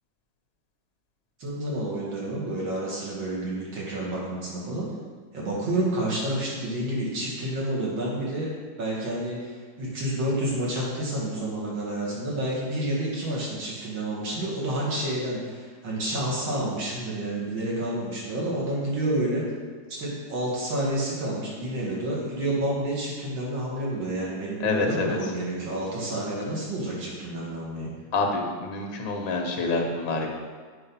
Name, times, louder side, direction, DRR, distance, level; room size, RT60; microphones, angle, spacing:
voice 1, 1.4-4.9 5.3-8.5 8.8-19.4 19.9-27.9, right 1 dB, 90° right, -5 dB, 2.8 m, -29 dB
voice 2, 24.6-25.3 28.1-30.3, left 3 dB, 90° left, 2 dB, 1.8 m, -27 dB
7.8 x 4.8 x 5.5 m, 1.6 s
omnidirectional pair, 2.1 m